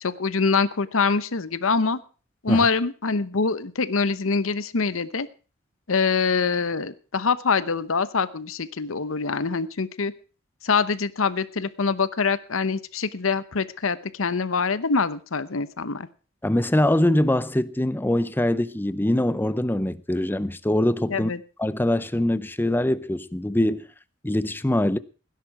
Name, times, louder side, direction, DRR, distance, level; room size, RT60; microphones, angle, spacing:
voice 1, 0.0-2.0 2.4-5.3 5.9-10.1 10.6-16.1 21.1-21.4, left 4 dB, 70° left, 0.9 m, -24 dB
voice 2, 16.4-21.3 21.6-23.8 24.2-25.0, left 1 dB, 10° left, 0.6 m, -23 dB
17.0 x 10.5 x 4.7 m
head